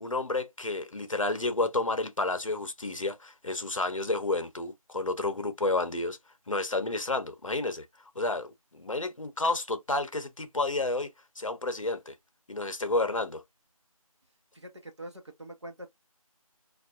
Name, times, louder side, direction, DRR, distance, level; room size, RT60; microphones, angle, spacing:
voice 1, 0.0-6.2 6.5-7.9 8.2-12.1 12.5-13.4, left 2 dB, 60° left, 0.7 m, -30 dB
voice 2, 14.5-15.9, right 1 dB, 50° right, 0.9 m, -44 dB
3.3 x 2.4 x 2.4 m
figure-of-eight pair, 170°, 19 cm